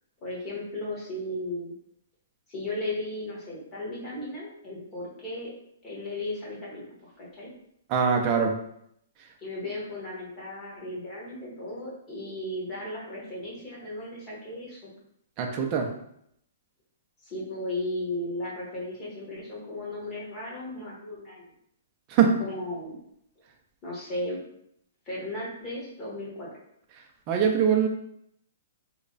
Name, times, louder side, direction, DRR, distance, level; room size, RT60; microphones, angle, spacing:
voice 1, 0.2-1.7 2.5-5.5 5.8-7.5 9.4-14.9 17.2-21.4 22.4-23.0 23.8-24.4 25.1-26.5, left 1 dB, 15° left, -6 dB, 1.0 m, -35 dB
voice 2, 7.9-8.5 15.4-15.9 22.1-22.3 27.3-27.9, right 7 dB, 25° right, 2 dB, 0.4 m, -22 dB
3.1 x 2.1 x 3.9 m, 0.73 s
hypercardioid pair, 170°, 0 cm